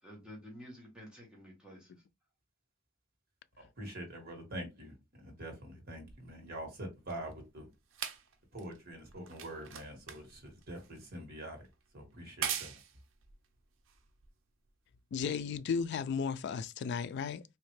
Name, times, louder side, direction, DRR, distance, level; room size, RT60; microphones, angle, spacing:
voice 1, 0.0-2.0, equal, 5° right, 1.3 m, -51 dB
voice 2, 3.6-7.7 8.5-11.6 11.9-12.7, right 1 dB, 50° right, 1.5 m, -45 dB
sound 1, 6.1-14.7 15.5-15.6, right 8 dB, 75° right, 0.6 m, -44 dB
voice 3, 15.1-17.4, left 6 dB, 60° left, 0.3 m, -34 dB
3.2 x 2.8 x 3.1 m
head